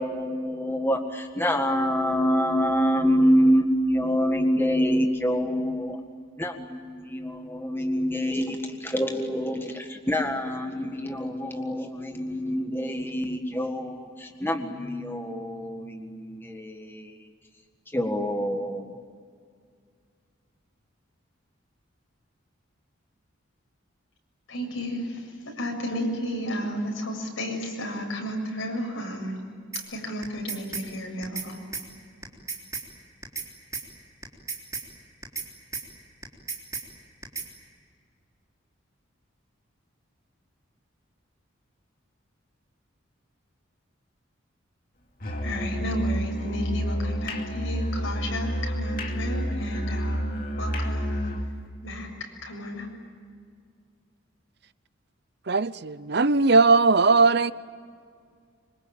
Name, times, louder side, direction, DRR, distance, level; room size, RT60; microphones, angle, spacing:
voice 1, 0.0-6.0 6.4-17.1 17.9-18.9, equal, 10° left, 1.7 m, -26 dB
voice 2, 24.5-29.4 29.7-31.6 45.4-50.2 50.6-51.2 51.8-52.9, equal, 80° left, 7.3 m, -32 dB
sound 1, 29.7-29.9 30.2-30.9 31.2-31.5 31.7-31.9 32.2-32.9 33.2-33.5 33.7-33.9 34.2-34.9 35.2-35.5 35.7-35.9 36.2-36.9 37.2-37.5, right 5 dB, 15° right, 3.5 m, -33 dB
Musical instrument, 45.2-51.5, equal, 45° left, 2.8 m, -29 dB
voice 3, 55.5-57.5, right 3 dB, 55° right, 0.7 m, -19 dB
26.0 x 24.5 x 9.1 m
head